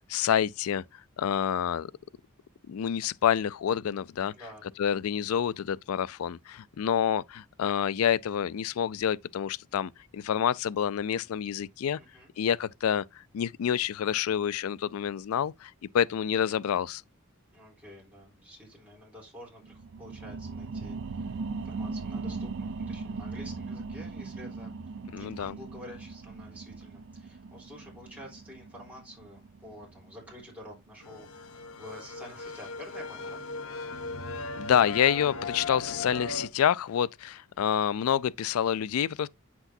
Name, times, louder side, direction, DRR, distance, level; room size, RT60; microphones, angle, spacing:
voice 1, 0.1-1.9 2.7-4.3 4.8-12.0 12.4-17.0 25.1-25.6 34.6-39.3, left 9 dB, 90° left, 0.4 m, -28 dB
voice 2, 4.3-4.7 12.0-12.3 17.5-21.4 21.6-24.7 25.1-33.4 35.3-35.4, equal, 5° right, 3.7 m, -49 dB
sound 1, 19.6-30.8 31.2-31.3, right 4 dB, 60° right, 0.4 m, -39 dB
sound 2, 31.0-36.5, left 3 dB, 70° left, 0.7 m, -38 dB
8.0 x 6.0 x 2.6 m
head